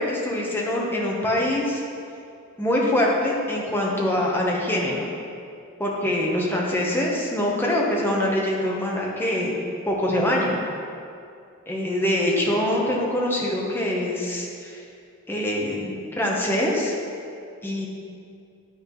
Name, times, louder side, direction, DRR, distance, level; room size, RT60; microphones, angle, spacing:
voice 1, 0.0-1.8 2.6-5.1 5.8-9.5 9.9-10.6 11.7-14.8 15.3-16.9 17.6-17.9, left 1 dB, 10° left, -3 dB, 1.0 m, -24 dB
9.4 x 5.7 x 3.1 m, 2.4 s
head